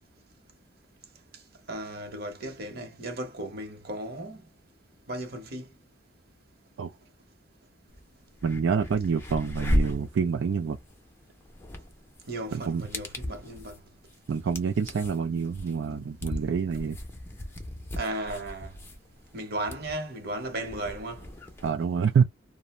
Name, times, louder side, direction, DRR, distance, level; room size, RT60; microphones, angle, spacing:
voice 1, 1.7-4.5 5.1-5.7 12.3-13.8 18.0-18.7 19.3-21.3, right 1 dB, 50° right, 0.8 m, -35 dB
sound 1, 7.9-8.0 8.3-21.7, equal, 10° left, 0.5 m, -35 dB
voice 2, 8.4-10.8 12.5-12.9 14.3-17.0 21.6-22.2, right 6 dB, 70° right, 0.3 m, -27 dB
2.5 x 2.0 x 3.0 m
head